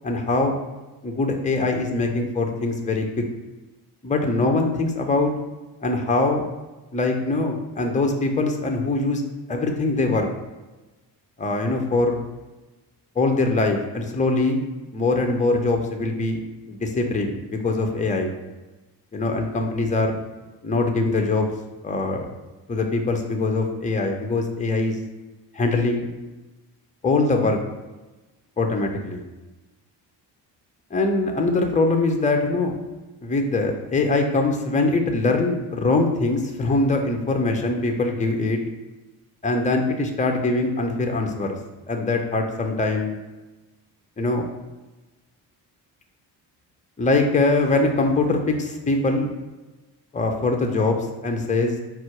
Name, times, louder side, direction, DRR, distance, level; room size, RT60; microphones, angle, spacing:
voice 1, 0.0-0.5 1.0-3.2 4.0-5.3 5.8-6.5 6.9-9.2 9.5-10.3 11.4-12.2 13.2-14.6 14.9-18.3 19.1-20.2 20.6-21.5 21.8-22.3 22.7-25.0 25.5-26.1 27.0-27.6 28.6-29.2 30.9-32.8 33.2-38.6 39.4-41.6 41.9-43.2 44.2-44.5 47.0-49.3 50.1-51.8, left 3 dB, 15° left, 3 dB, 0.7 m, -22 dB
4.3 x 2.0 x 4.5 m, 1.1 s
supercardioid pair, 55°, 48 cm